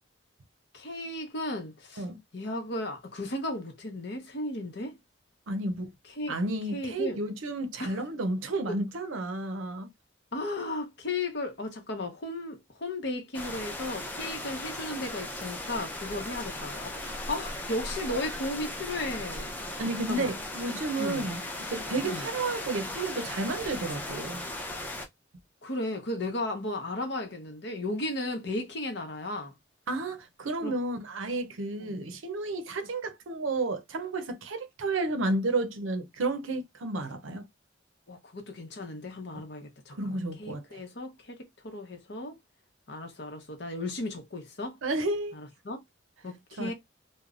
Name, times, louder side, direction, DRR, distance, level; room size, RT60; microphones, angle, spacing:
voice 1, 0.7-2.0 2.3-5.0 6.1-6.3 6.7-7.2 7.8-8.0 10.3-19.5 20.1-20.3 21.0-21.3 22.0-22.3 25.6-29.5 30.6-30.7 31.8-32.0 38.1-41.4 41.6-42.4 42.9-44.8 45.4-45.8 46.2-46.7, left 2 dB, 60° left, 0.8 m, -35 dB
voice 2, 5.5-5.9 6.3-9.9 19.8-21.4 21.7-24.4 29.9-37.4 39.9-40.8 44.8-45.4 46.6-46.7, right 2 dB, 85° right, 0.6 m, -32 dB
sound 1, 13.3-25.1, left 1 dB, 10° left, 0.5 m, -37 dB
3.0 x 2.1 x 2.4 m
head